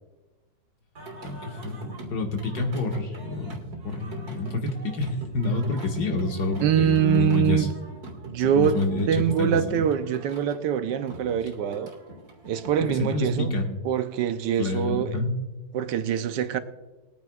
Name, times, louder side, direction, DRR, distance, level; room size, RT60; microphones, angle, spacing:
Singing, 0.9-13.3, right 2 dB, 55° right, 2.4 m, -43 dB
voice 1, 1.2-1.8 2.1-7.7 8.4-9.1 9.4-9.9 12.9-13.7 14.6-15.3, left 2 dB, 65° left, 2.1 m, -28 dB
voice 2, 6.6-7.7 8.2-8.8 9.1-11.9 12.4-13.6 13.8-15.1 15.7-16.6, right 9 dB, 80° right, 1.3 m, -24 dB
21.5 x 9.3 x 2.3 m
omnidirectional pair, 1.9 m